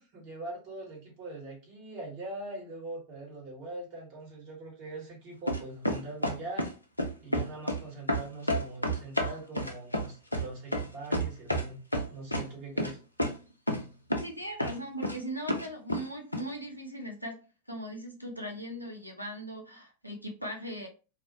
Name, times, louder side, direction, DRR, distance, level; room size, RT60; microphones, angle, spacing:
voice 1, 0.0-6.7 7.2-11.8 12.1-13.0, right 2 dB, 45° right, -2 dB, 1.2 m, -42 dB
sound 1, 5.5-6.7 7.0-7.8 8.1-11.7 11.9-12.5 12.8-12.9 13.2-13.3 13.7-13.8 14.1-14.3 14.6-15.1 15.5-16.0 16.3-16.4, equal, 85° left, 0.4 m, -29 dB
voice 2, 14.2-17.4 17.7-20.9, right 1 dB, 90° right, 3 dB, 0.5 m, -39 dB
2.3 x 2.1 x 2.7 m, 0.34 s
figure-of-eight pair, 90°, 0 cm